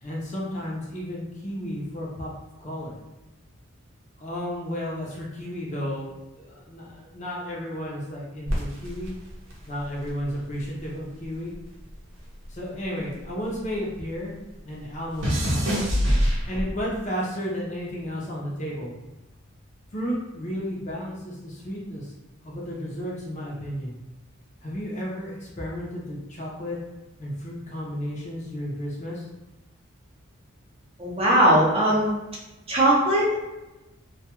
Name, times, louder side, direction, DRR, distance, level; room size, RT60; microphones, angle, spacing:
voice 1, 0.0-2.3 2.6-2.9 4.2-9.2 9.7-11.5 12.5-14.3 14.7-15.7 16.4-18.9 19.9-22.1 22.4-24.0 24.6-26.8 27.2-29.3, equal, 35° left, -4 dB, 0.5 m, -33 dB
sound 1, 8.5-11.0 11.2-13.9 14.2-17.0 17.7-18.1, equal, 60° right, 0.7 m, -27 dB
voice 2, 31.0-32.1 32.7-33.4, right 1 dB, 25° right, -5 dB, 0.6 m, -19 dB
2.2 x 2.2 x 2.9 m, 1.0 s
head